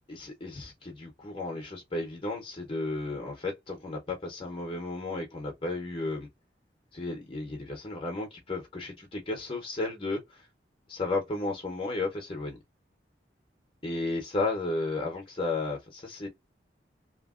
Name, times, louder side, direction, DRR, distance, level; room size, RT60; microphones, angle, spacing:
voice 1, 0.1-6.3 6.9-10.5 10.9-12.6 13.8-16.3, left 2 dB, 30° left, 0.7 m, -33 dB
2.8 x 2.8 x 2.3 m
head